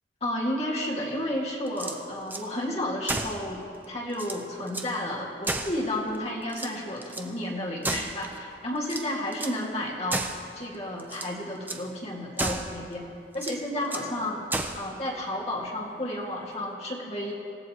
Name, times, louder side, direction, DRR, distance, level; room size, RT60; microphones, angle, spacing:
voice 1, 0.2-10.3 10.6-13.1 13.3-14.4 14.8-17.3, left 1 dB, 35° left, -4 dB, 2.2 m, -32 dB
sound 1, 1.7-2.5 3.0-3.4 3.8-3.9 4.1-4.9 5.4-6.2 6.5-7.3 7.8-8.4 8.8-9.6 10.1-10.5 11.0-11.4 11.7-11.9 12.4-12.8 13.3-14.1 14.5-14.9, right 2 dB, 10° right, 0.8 m, -33 dB
26.5 x 16.5 x 3.1 m, 2.6 s
head